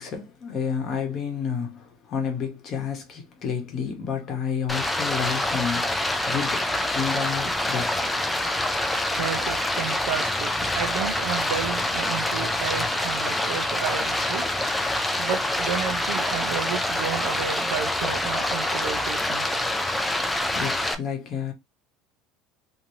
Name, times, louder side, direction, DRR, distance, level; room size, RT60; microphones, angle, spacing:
voice 1, 0.0-8.1 20.5-21.5, left 7 dB, 35° left, 0.9 m, -30 dB
Stream, 4.7-20.9, left 1 dB, 5° left, 0.3 m, -26 dB
voice 2, 9.1-14.6 15.2-19.5, right 9 dB, 70° right, 0.5 m, -32 dB
3.0 x 2.6 x 2.7 m
cardioid pair, 165°, 0 cm